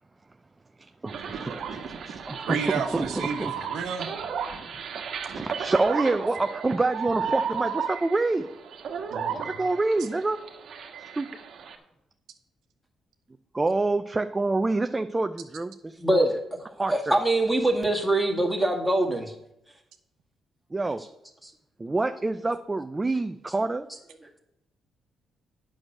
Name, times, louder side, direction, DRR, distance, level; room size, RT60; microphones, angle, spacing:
voice 1, 0.8-1.5 2.1-3.5 5.3-8.5 9.3-10.4 11.2-11.3 13.5-16.3 16.7-17.2 20.7-21.0 21.8-23.9, right 2 dB, 20° right, 8 dB, 0.5 m, -27 dB
sound 1, 1.1-11.8, right 6 dB, 70° right, 1.3 m, -34 dB
voice 2, 2.5-4.1 9.1-9.5, right 6 dB, 90° right, 5 dB, 1.1 m, -31 dB
voice 3, 16.0-16.4 16.9-19.3, right 1 dB, 5° right, 2 dB, 1.9 m, -23 dB
8.6 x 6.3 x 6.4 m, 0.84 s
cardioid pair, 80°, 0 cm